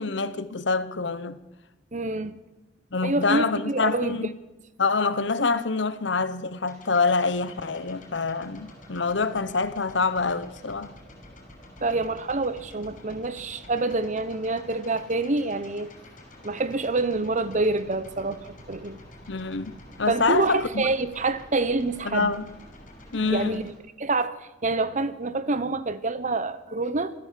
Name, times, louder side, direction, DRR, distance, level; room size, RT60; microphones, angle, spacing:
voice 1, 0.0-1.4 2.9-4.3 4.8-11.0 19.3-19.7 20.0-20.9 22.0-22.4 23.1-23.7, left 4 dB, 70° left, 1.1 m, -26 dB
voice 2, 1.9-2.4 3.0-4.2 11.8-15.9 16.4-19.0 20.1-22.3 23.2-23.7 24.0-27.1, right 3 dB, 40° right, 1.0 m, -27 dB
sound 1, 6.6-23.7, left 1 dB, 45° left, 6.3 m, -48 dB
26.0 x 15.0 x 7.6 m
head